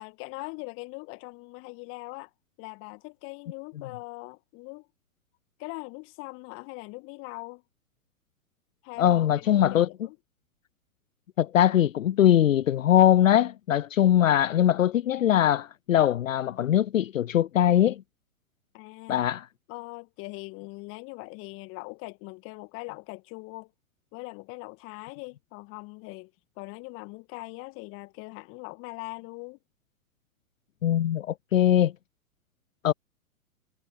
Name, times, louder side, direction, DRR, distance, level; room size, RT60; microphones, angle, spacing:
voice 1, 0.0-2.3 2.6-4.9 5.6-7.6 8.8-10.2 18.7-19.2 19.7-23.7 24.1-26.3 26.6-29.6, left 28 dB, 30° left, 1.5 m, -41 dB
voice 2, 9.0-9.9 11.4-18.0 19.1-19.5 30.8-31.9 32.8-32.9, left 11 dB, 65° left, 0.8 m, -21 dB
figure-of-eight pair, 110°, 43 cm